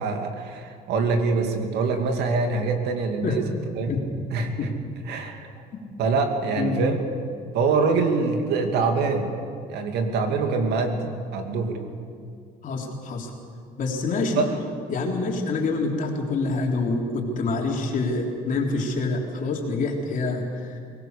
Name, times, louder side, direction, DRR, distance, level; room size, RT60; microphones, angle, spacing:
voice 1, 0.0-3.4 3.8-3.9 4.3-4.7 5.1-5.5 6.0-7.0 7.5-9.3 9.7-11.8 14.3-14.5, right 4 dB, 80° right, 5 dB, 2.4 m, -24 dB
voice 2, 12.6-13.3 13.8-14.4 14.9-20.8, left 3 dB, 50° left, 0 dB, 3.6 m, -26 dB
23.0 x 18.5 x 6.7 m, 2.3 s
cardioid pair, 110°, 17 cm